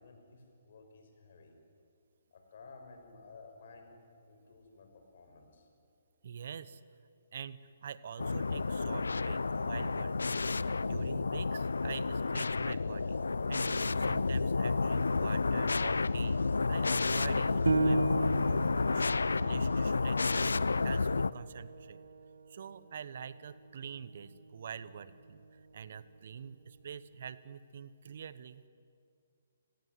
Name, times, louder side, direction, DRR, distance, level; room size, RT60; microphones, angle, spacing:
voice 1, 0.0-1.6 2.3-5.7, left 3 dB, 60° left, 4 dB, 6.3 m, -55 dB
voice 2, 6.2-6.8 7.3-13.2 13.5-16.4 16.7-22.0 22.5-28.6, right 7 dB, 60° right, 16 dB, 1.1 m, -46 dB
sound 1, 8.2-21.3, left 4 dB, 85° left, 0.5 m, -31 dB
Piano, 17.7-22.8 23.3-23.4 24.0-24.5, right 2 dB, 90° right, 1.2 m, -35 dB
29.5 x 18.0 x 9.8 m, 2.4 s
hypercardioid pair, 140°, 0 cm